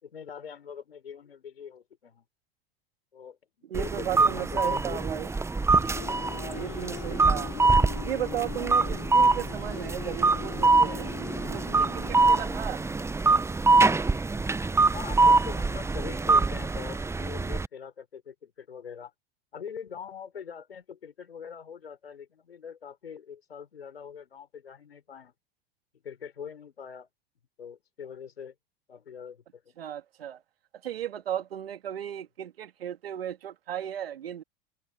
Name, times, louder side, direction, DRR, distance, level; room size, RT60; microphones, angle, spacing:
voice 1, 0.0-2.3 3.1-5.0 14.9-19.1 19.5-25.3 26.0-27.1 27.6-28.5 28.9-29.7, left 7 dB, 85° left, 4.5 m, -43 dB
sound 1, 3.7-17.7, right 3 dB, 10° right, 0.9 m, -24 dB
voice 2, 3.7-5.3 6.3-7.5 8.1-11.1 11.5-12.8 29.8-30.4 30.8-34.4, right 10 dB, 75° right, 2.6 m, -35 dB
sound 2, 5.6-13.1, left 36 dB, 55° left, 4.8 m, -42 dB
hypercardioid pair, 85°, 29 cm